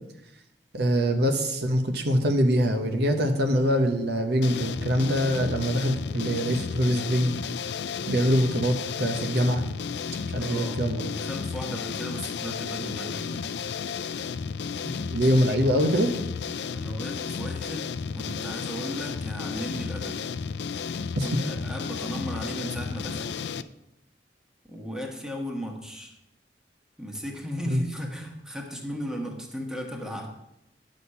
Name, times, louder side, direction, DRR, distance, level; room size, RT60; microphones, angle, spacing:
voice 1, 0.7-7.3 8.1-9.6 10.3-11.1 14.8-16.1 21.2-21.3 27.7-27.8, equal, 65° right, 5 dB, 1.0 m, -24 dB
sound 1, 4.4-23.6, left 6 dB, 70° left, 0.4 m, -33 dB
voice 2, 10.4-13.4 16.7-20.2 21.2-23.3 24.7-26.2 27.0-30.3, equal, 5° right, 1 dB, 1.3 m, -36 dB
10.0 x 6.4 x 5.6 m, 0.86 s
head